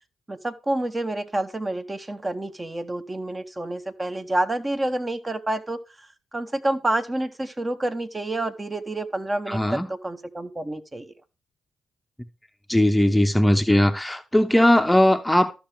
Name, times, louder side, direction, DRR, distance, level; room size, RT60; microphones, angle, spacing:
voice 1, 0.3-5.8 6.3-11.0, right 1 dB, 25° right, 1.1 m, -28 dB
voice 2, 9.5-9.9 12.7-15.5, left 1 dB, 10° left, 0.8 m, -19 dB
13.0 x 6.0 x 3.5 m
hypercardioid pair, 40°, 0 cm